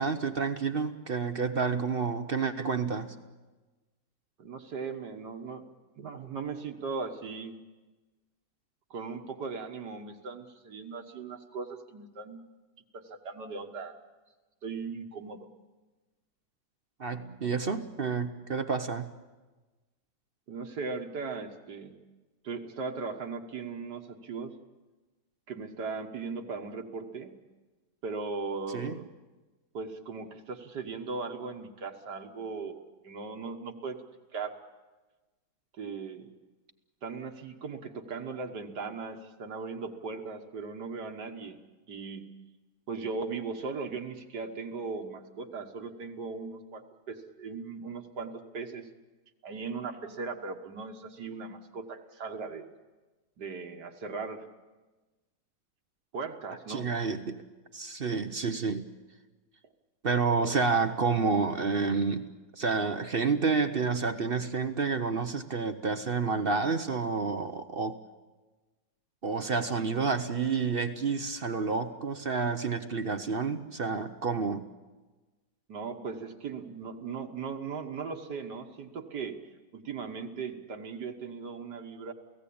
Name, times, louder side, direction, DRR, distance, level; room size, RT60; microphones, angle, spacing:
voice 1, 0.0-3.1 17.0-19.0 28.7-29.0 56.7-57.4 57.7-58.9 60.0-62.3 62.5-68.0 69.2-74.6, right 4 dB, 45° right, 9 dB, 0.9 m, -29 dB
voice 2, 4.4-5.7 6.0-7.5 8.9-12.4 12.9-14.0 14.6-15.5 20.5-22.0 22.4-24.5 25.5-27.3 28.0-29.0 29.7-34.0 34.3-34.5 35.8-36.3 37.0-41.6 41.9-42.3 42.9-48.9 49.4-52.6 53.4-54.4 56.1-56.9 75.7-79.4 79.7-82.1, right 4 dB, 75° right, 4 dB, 2.0 m, -38 dB
29.0 x 17.0 x 8.6 m, 1.2 s
omnidirectional pair, 1.8 m